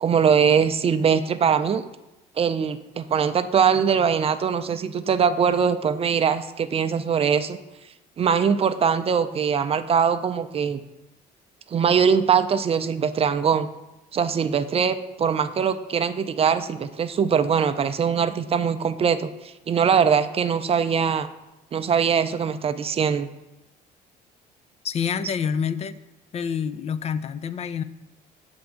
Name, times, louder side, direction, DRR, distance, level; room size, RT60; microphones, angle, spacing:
voice 1, 0.0-1.8 2.4-7.6 8.2-10.8 11.7-13.7 14.1-19.3 19.7-21.3 21.7-23.3, right 7 dB, 35° right, 10 dB, 0.4 m, -22 dB
voice 2, 24.8-26.0 26.3-27.8, left 7 dB, 40° left, 14 dB, 0.4 m, -27 dB
7.7 x 3.5 x 6.4 m, 0.99 s
cardioid pair, 110°, 17 cm